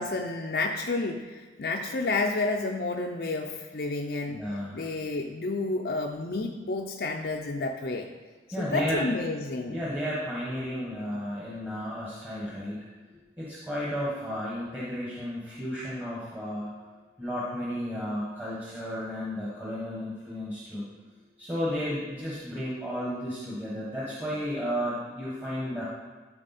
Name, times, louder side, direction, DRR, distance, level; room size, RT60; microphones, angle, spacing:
voice 1, 0.0-4.4 4.7-8.1 8.6-9.8, left 3 dB, 60° left, 1 dB, 0.5 m, -30 dB
voice 2, 4.3-4.9 8.5-9.1 9.7-12.8 13.4-16.7 17.2-20.8 21.4-25.8, equal, 10° right, -8 dB, 1.2 m, -33 dB
12.5 x 4.4 x 4.2 m, 1.4 s
head